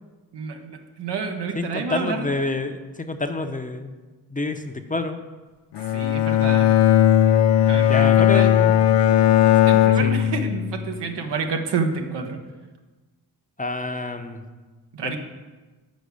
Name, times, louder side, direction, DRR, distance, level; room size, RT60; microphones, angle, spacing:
voice 1, 0.3-2.3 5.9-6.7 7.6-8.5 9.1-9.2 9.7-12.4 14.9-15.2, right 4 dB, 80° right, 4 dB, 0.9 m, -29 dB
voice 2, 1.5-4.0 4.3-5.2 7.9-8.8 10.0-10.2 13.6-14.4 15.0-15.2, left 2 dB, 20° left, 7 dB, 0.7 m, -28 dB
Bowed string instrument, 5.7-11.0, left 11 dB, 85° left, 0.5 m, -17 dB
6.3 x 4.7 x 6.7 m, 1.3 s
cardioid pair, 50°, 41 cm